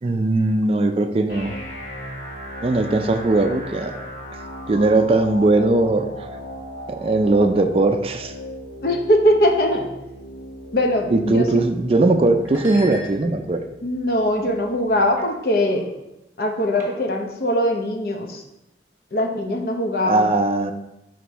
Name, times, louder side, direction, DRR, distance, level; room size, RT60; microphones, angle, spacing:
voice 1, 0.0-1.6 2.6-4.0 4.7-6.3 6.9-8.3 11.1-13.6 20.0-20.7, right 2 dB, 30° right, 7 dB, 0.3 m, -19 dB
sound 1, 1.3-15.3, equal, 80° left, 2.3 m, -37 dB
voice 2, 8.8-9.9 10.7-11.5 13.8-15.8 16.4-18.4 19.1-20.3, equal, 55° left, 3 dB, 0.7 m, -21 dB
sound 2, 11.6-11.7 12.4-13.6 14.2-14.5 15.2-15.3 15.6-15.9 16.8-17.3, right 1 dB, 15° right, 1.2 m, -39 dB
5.9 x 5.1 x 3.4 m, 0.92 s
head